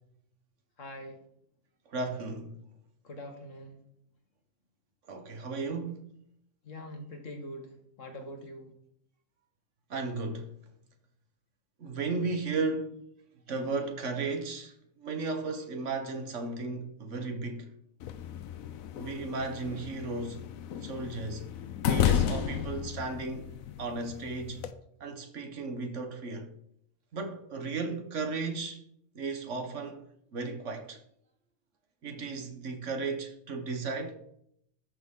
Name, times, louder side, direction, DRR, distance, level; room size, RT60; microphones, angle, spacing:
voice 1, 0.8-1.2 3.0-3.8 6.6-8.7, left 1 dB, 65° left, 1.8 m, -43 dB
voice 2, 1.9-2.6 5.1-6.1 9.9-10.6 11.8-13.0 13.5-17.7 19.0-20.5 20.8-21.6 21.8-23.5 23.8-24.6 25.0-26.5 27.1-28.8 29.1-30.0 30.3-31.0 32.0-34.2, right 3 dB, 65° right, 1.4 m, -35 dB
sound 1, 18.0-24.7, left 9 dB, 85° left, 1.1 m, -33 dB
12.5 x 6.4 x 3.7 m
omnidirectional pair, 1.4 m